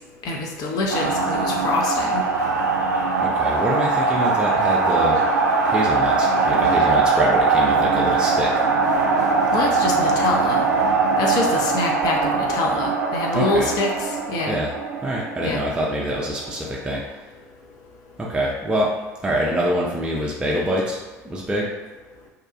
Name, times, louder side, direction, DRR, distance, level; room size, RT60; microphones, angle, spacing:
voice 1, 0.2-2.2 9.5-10.6 11.2-14.6 15.4-15.6, left 2 dB, 45° left, 0 dB, 0.6 m, -25 dB
sound 1, 0.9-16.7, right 4 dB, 75° right, 0.4 m, -21 dB
voice 2, 3.2-5.3 5.7-8.5 13.3-13.7 14.5-14.7 15.0-17.0 18.2-18.9 19.2-21.7, equal, 10° right, -4 dB, 0.4 m, -25 dB
2.7 x 2.2 x 2.5 m, 1.2 s
figure-of-eight pair, 65°, 9 cm